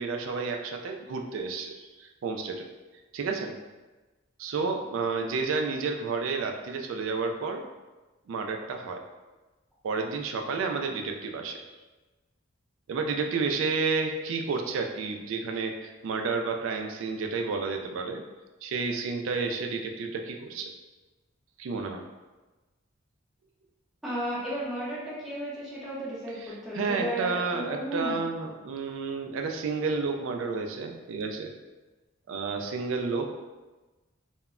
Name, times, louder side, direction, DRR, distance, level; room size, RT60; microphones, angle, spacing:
voice 1, 0.0-2.7 3.1-3.5 4.4-7.6 8.3-9.0 9.8-11.6 12.9-18.2 18.6-20.7 21.6-22.0 26.4-31.5 32.3-33.3, right 4 dB, 75° right, 4 dB, 0.3 m, -31 dB
voice 2, 24.0-28.2, equal, ahead, -9 dB, 0.5 m, -34 dB
2.1 x 2.0 x 3.5 m, 1.2 s
head